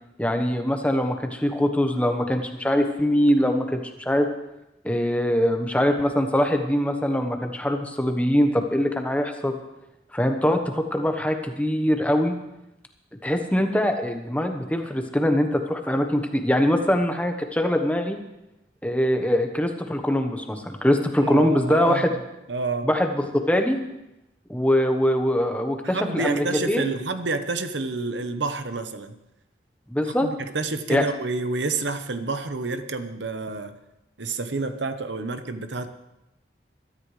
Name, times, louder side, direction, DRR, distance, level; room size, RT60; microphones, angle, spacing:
voice 1, 0.2-4.3 4.8-9.6 10.1-12.3 13.2-18.2 18.8-22.1 22.8-23.8 24.5-26.9 29.9-30.3 30.9-31.0, equal, 10° left, 5 dB, 1.0 m, -23 dB
voice 2, 21.2-22.1 22.5-22.9 25.8-29.2 30.1-33.8 34.2-35.9, right 3 dB, 85° right, 9 dB, 1.0 m, -29 dB
21.5 x 13.5 x 3.3 m, 0.89 s
head